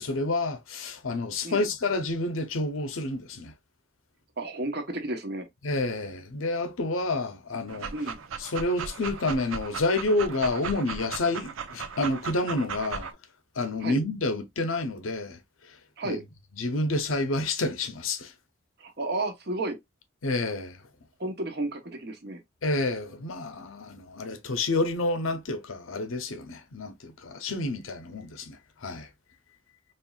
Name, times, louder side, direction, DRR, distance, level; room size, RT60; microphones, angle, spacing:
voice 1, 0.0-3.5 5.6-7.9 8.4-13.1 13.6-15.4 16.0-16.2 16.6-18.3 20.2-20.8 22.6-29.1, left 2 dB, 85° left, 0.7 m, -29 dB
voice 2, 4.4-5.5 7.9-8.2 13.8-14.0 16.0-16.2 18.8-19.8 21.2-22.4, right 2 dB, 50° right, 0.9 m, -32 dB
Dog, 7.7-13.1, right 6 dB, 80° right, 0.5 m, -37 dB
4.4 x 3.1 x 2.3 m
head